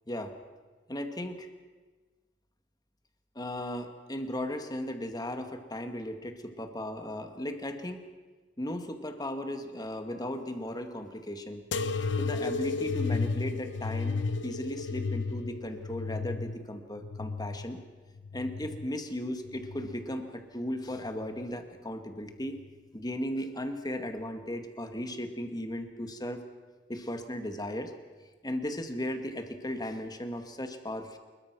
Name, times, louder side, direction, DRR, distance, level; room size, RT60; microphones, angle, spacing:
voice 1, 0.9-1.5 3.4-8.0 8.6-11.6 12.2-17.8 18.3-22.6 22.9-26.4 26.9-28.0 28.4-31.2, left 1 dB, 20° left, 6 dB, 2.0 m, -36 dB
sound 1, 11.7-18.9 19.4-20.2 21.0-21.5 22.5-22.6, left 4 dB, 75° left, 1.1 m, -33 dB
25.5 x 22.0 x 6.2 m, 1.3 s
head